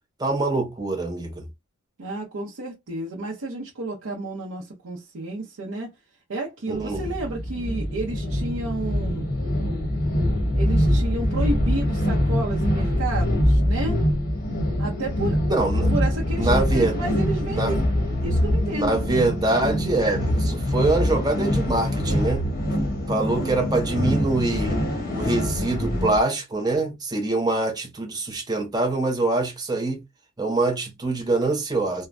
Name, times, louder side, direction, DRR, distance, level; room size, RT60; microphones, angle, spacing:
voice 1, 0.2-1.4 6.7-7.1 15.5-15.9 16.4-17.0 17.5-17.7 18.7-22.5 23.1-24.8 25.1-30.0 30.4-32.1, right 2 dB, 20° right, 0.6 m, -24 dB
voice 2, 2.0-5.9 6.3-9.3 10.5-14.0 14.8-15.4 15.9-17.8 18.2-19.0, right 2 dB, 70° right, 0.6 m, -31 dB
sound 1, 6.7-26.2, equal, 40° left, 0.9 m, -24 dB
3.2 x 2.0 x 2.5 m
head